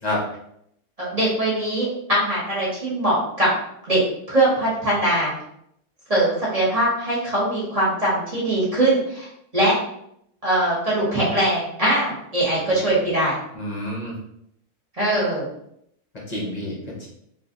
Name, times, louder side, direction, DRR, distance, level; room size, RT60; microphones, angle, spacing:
voice 1, 1.0-3.5 3.9-4.0 4.3-5.3 6.1-9.3 9.5-9.8 10.4-13.3 15.0-15.5, right 1 dB, 25° right, -7 dB, 1.1 m, -21 dB
voice 2, 13.5-14.2 16.3-17.1, left 1 dB, 35° left, -5 dB, 0.7 m, -29 dB
2.9 x 2.5 x 3.7 m, 0.74 s
omnidirectional pair, 1.7 m